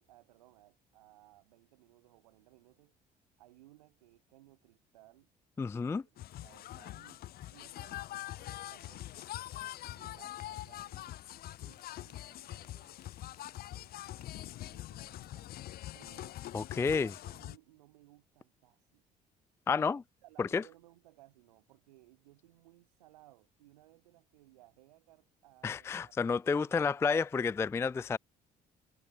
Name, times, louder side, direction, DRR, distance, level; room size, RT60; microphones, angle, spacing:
voice 1, 0.0-2.9 3.4-5.3 5.8-7.2 7.5-9.3 9.9-11.2 11.6-13.0 13.4-15.6 15.9-16.4 16.7-19.0 20.2-26.2 26.4-27.1, right 17 dB, 75° right, 5.4 m, -62 dB
voice 2, 5.6-6.0 16.5-17.1 19.7-20.0 20.4-20.6 25.6-28.2, left 5 dB, 15° left, 0.3 m, -30 dB
sound 1, 6.2-17.6, left 14 dB, 50° left, 0.6 m, -44 dB
sound 2, 8.5-14.5, left 6 dB, 90° left, 2.1 m, -64 dB
figure-of-eight pair, 50°, 20 cm